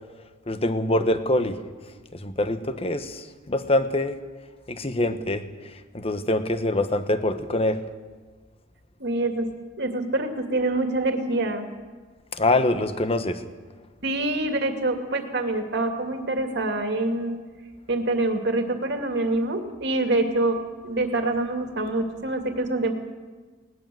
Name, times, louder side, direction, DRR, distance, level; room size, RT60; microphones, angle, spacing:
voice 1, 0.5-1.6 2.1-4.2 4.7-7.8 12.3-13.4, left 1 dB, 30° left, 10 dB, 1.2 m, -25 dB
voice 2, 9.0-9.5 9.8-11.7 14.0-17.4 17.9-20.6 20.8-22.9, right 2 dB, 60° right, 5 dB, 2.3 m, -25 dB
20.0 x 18.5 x 7.7 m, 1.4 s
head